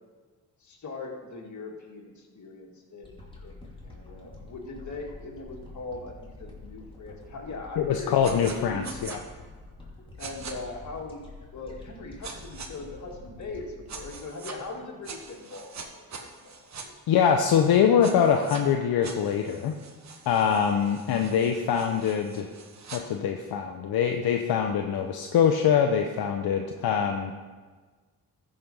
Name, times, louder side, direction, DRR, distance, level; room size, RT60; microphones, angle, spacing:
voice 1, 0.6-8.9 10.1-11.3 11.5-16.9, left 3 dB, 50° left, -1 dB, 2.2 m, -40 dB
sound 1, 3.0-15.4 15.8-15.9, left 2 dB, 15° left, 2.9 m, -47 dB
voice 2, 7.8-9.2 17.1-19.7 20.3-22.5 22.9-27.3, left 7 dB, 75° left, 4 dB, 0.8 m, -24 dB
sound 2, 8.2-8.6 8.8-9.2 10.2-10.5 12.2-12.7 13.9-14.6 15.0-16.9 18.0-18.6 19.0-23.0, right 5 dB, 50° right, 1.3 m, -43 dB
14.0 x 5.2 x 5.5 m, 1.4 s
cardioid pair, 70°, 37 cm